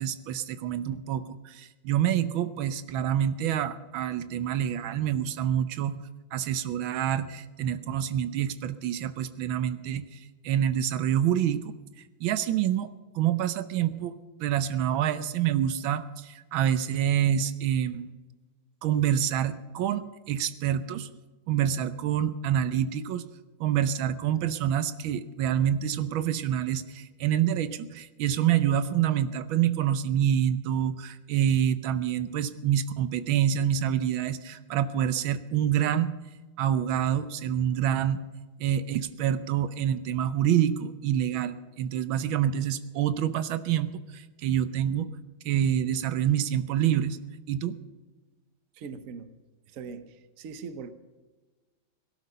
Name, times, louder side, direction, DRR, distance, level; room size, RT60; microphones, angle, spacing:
voice 1, 0.0-6.0 6.3-10.2 10.4-11.7 12.2-12.9 13.1-14.1 14.4-18.1 18.8-21.1 21.5-23.3 23.6-36.1 36.6-38.2 38.6-45.1 45.4-47.2 47.5-47.8, right 10 dB, 80° right, 13 dB, 1.5 m, -27 dB
voice 2, 48.7-49.3 49.7-50.9, right 5 dB, 55° right, 11 dB, 1.1 m, -41 dB
17.5 x 12.5 x 5.6 m, 1.3 s
omnidirectional pair, 2.2 m